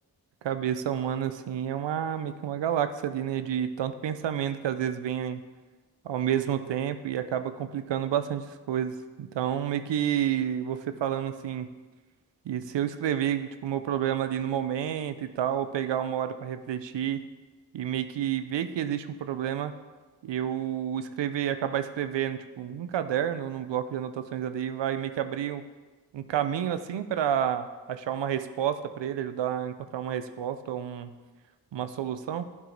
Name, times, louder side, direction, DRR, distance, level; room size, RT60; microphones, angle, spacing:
voice 1, 0.4-5.4 6.0-11.7 12.5-17.3 17.7-19.7 20.2-25.7 26.1-31.1 31.7-32.5, right 10 dB, 85° right, 10 dB, 0.5 m, -30 dB
9.2 x 4.8 x 3.9 m, 1.3 s
cardioid pair, 45°, 42 cm